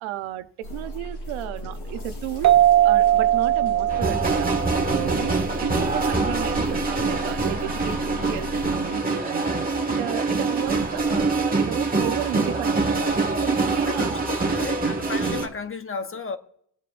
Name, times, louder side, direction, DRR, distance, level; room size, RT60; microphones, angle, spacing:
voice 1, 0.0-2.6 2.8-4.5 4.9-9.5 9.9-14.2, right 13 dB, 90° right, 0.8 m, -33 dB
sound 1, 0.6-8.7, left 2 dB, 85° left, 5.3 m, -36 dB
sound 2, 2.4-5.7, right 13 dB, 35° right, 0.6 m, -20 dB
sound 3, 3.9-15.5, right 3 dB, 20° right, 1.7 m, -24 dB
voice 2, 13.8-16.4, left 4 dB, 25° left, 1.0 m, -33 dB
24.5 x 8.5 x 2.5 m
cardioid pair, 90°, 47 cm